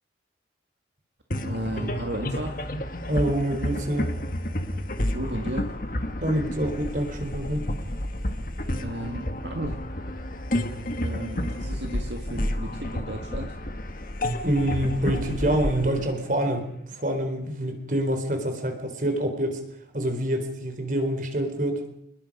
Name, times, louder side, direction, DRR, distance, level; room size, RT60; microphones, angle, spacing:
sound 1, 1.3-16.9, left 1 dB, 45° left, 1.6 m, -30 dB
voice 1, 1.4-2.7 5.1-5.7 8.8-9.8 11.0-13.6, right 1 dB, 70° right, 3 dB, 2.1 m, -34 dB
voice 2, 3.1-4.1 6.2-7.6 14.4-19.6 19.9-21.8, right 1 dB, 45° right, 6 dB, 4.1 m, -26 dB
28.0 x 20.5 x 5.5 m, 0.76 s
head